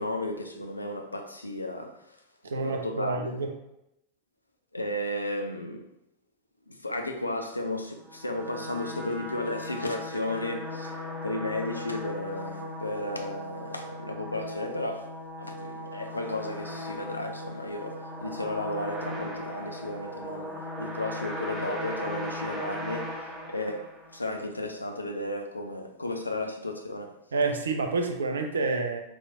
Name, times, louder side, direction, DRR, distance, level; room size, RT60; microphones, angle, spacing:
voice 1, 0.0-2.2 2.5-3.3 4.7-5.9 6.7-15.1 15.4-23.9 24.1-27.1, left 1 dB, 85° left, 0.4 m, -34 dB
voice 2, 2.4-3.5 27.3-29.0, right 3 dB, 70° right, 0.5 m, -28 dB
sound 1, 8.0-24.3, left 1 dB, 5° right, 1.4 m, -38 dB
3.9 x 3.0 x 2.4 m
figure-of-eight pair, 90°, 0 cm